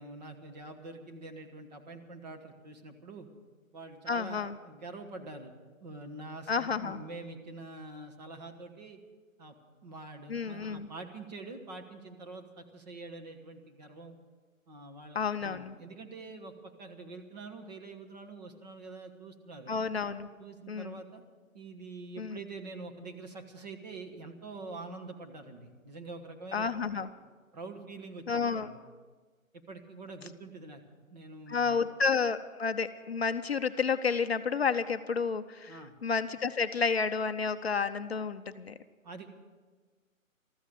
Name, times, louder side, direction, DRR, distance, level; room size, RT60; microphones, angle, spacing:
voice 1, 0.0-3.3 3.7-5.5 5.8-9.0 9.4-9.5 9.8-14.1 14.7-19.8 20.4-21.2 21.5-26.7 26.9-27.1 27.5-28.8 29.5-30.8 31.1-31.8 35.7-35.9 39.0-39.3, right 3 dB, 30° right, 4 dB, 1.4 m, -45 dB
voice 2, 4.1-4.5 6.5-7.0 10.3-10.9 15.2-15.7 19.7-20.3 20.7-21.0 22.2-22.4 26.5-27.1 28.3-28.7 31.5-38.7, left 5 dB, 50° left, 10 dB, 0.6 m, -31 dB
14.5 x 13.5 x 6.6 m, 1.4 s
hypercardioid pair, 160°, 42 cm